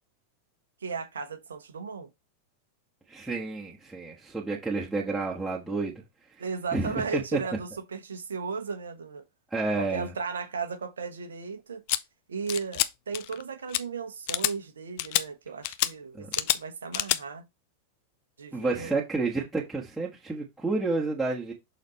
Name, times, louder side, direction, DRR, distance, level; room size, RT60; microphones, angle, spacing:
voice 1, 0.8-2.1 6.4-9.2 9.8-11.8 12.3-17.5 18.4-19.0, right 5 dB, 70° right, 1.1 m, -35 dB
voice 2, 3.1-5.9 6.7-7.4 9.5-10.1 16.1-16.3 18.5-21.5, right 3 dB, 5° right, 1.7 m, -30 dB
sound 1, 11.9-12.0 12.5-12.9 13.1-13.4 13.7-13.8 14.3-14.5 15.0-15.2 15.6-15.9 16.3-16.6 16.9-17.2, left 15 dB, 50° left, 0.5 m, -27 dB
6.5 x 4.0 x 4.1 m
figure-of-eight pair, 90°, 0 cm